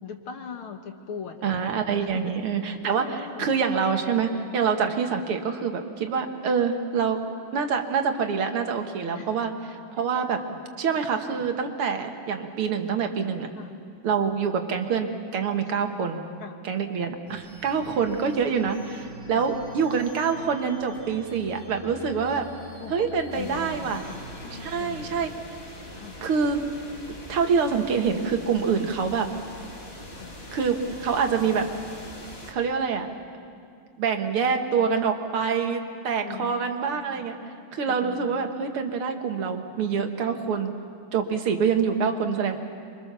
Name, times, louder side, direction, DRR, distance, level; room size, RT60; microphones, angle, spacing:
voice 1, 0.0-2.3 2.6-3.6 9.1-9.3 10.4-10.6 13.5-13.8 16.4-16.6 17.8-17.9 19.3-19.5 22.8-25.4 25.9-26.2 30.1-30.4 36.1-37.2 37.8-38.4, left 7 dB, 75° left, 5 dB, 2.4 m, -41 dB
voice 2, 1.4-7.2 7.5-9.5 9.9-10.4 10.8-13.5 14.0-16.2 16.6-22.5 22.9-24.0 24.6-25.3 26.2-26.6 27.3-29.3 30.5-31.7 32.5-33.1 34.0-37.4 37.7-40.7 41.1-42.6, right 6 dB, 85° right, 5 dB, 2.4 m, -26 dB
sound 1, 17.3-25.1, equal, 20° right, 8.1 m, -46 dB
sound 2, 23.3-32.5, left 1 dB, 30° left, 2.4 m, -42 dB
27.5 x 24.0 x 6.9 m, 2.3 s
omnidirectional pair, 2.3 m